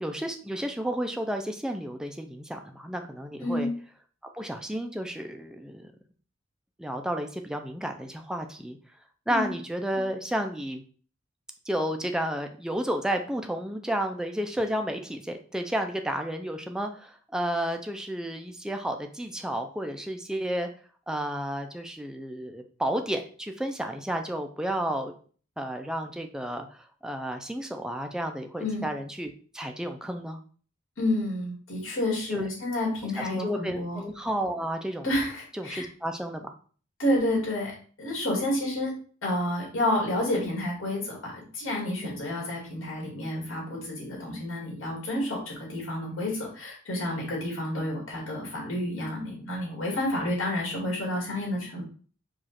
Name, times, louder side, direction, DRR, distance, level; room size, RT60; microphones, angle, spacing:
voice 1, 0.0-3.7 4.3-5.9 6.8-8.8 9.3-10.8 11.7-20.7 21.1-25.1 25.6-30.4 32.3-32.5 33.0-35.1 35.5-36.4 42.0-42.2, equal, 5° right, 4 dB, 0.4 m, -32 dB
voice 2, 3.4-3.7 9.3-9.5 28.6-28.9 31.0-34.0 35.0-35.9 37.0-37.7 38.0-38.9 39.2-51.8, left 1 dB, 80° left, -3 dB, 2.0 m, -30 dB
4.9 x 2.4 x 4.2 m, 0.42 s
head